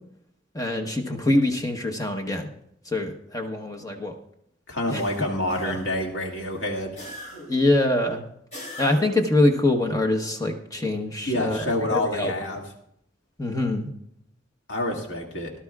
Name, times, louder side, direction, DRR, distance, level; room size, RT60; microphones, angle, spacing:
voice 1, 0.5-2.5 2.9-4.1 4.9-5.0 5.6-5.8 7.5-8.3 8.8-12.5 13.4-13.9, left 1 dB, 20° left, 3 dB, 1.0 m, -24 dB
voice 2, 4.7-7.0 11.3-12.6 14.7-15.5, left 1 dB, 80° left, 0 dB, 2.3 m, -27 dB
sound 1, 4.9-6.1 6.9-7.7 8.5-9.3, left 1 dB, 40° left, 5.5 m, -40 dB
18.5 x 11.5 x 2.4 m, 0.71 s
head